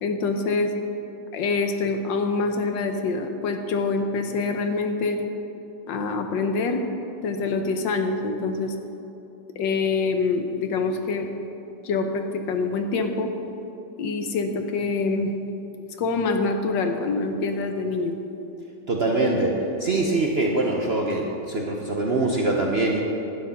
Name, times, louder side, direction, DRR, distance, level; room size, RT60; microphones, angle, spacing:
voice 1, 0.0-0.7 1.3-5.2 5.9-6.8 7.2-8.7 9.6-11.3 11.8-13.3 14.0-15.3 16.0-18.1, left 4 dB, 75° left, 6 dB, 1.5 m, -25 dB
voice 2, 18.9-19.5 19.8-23.0, right 2 dB, 45° right, -1 dB, 0.8 m, -23 dB
11.5 x 9.6 x 5.7 m, 3.0 s
omnidirectional pair, 2.1 m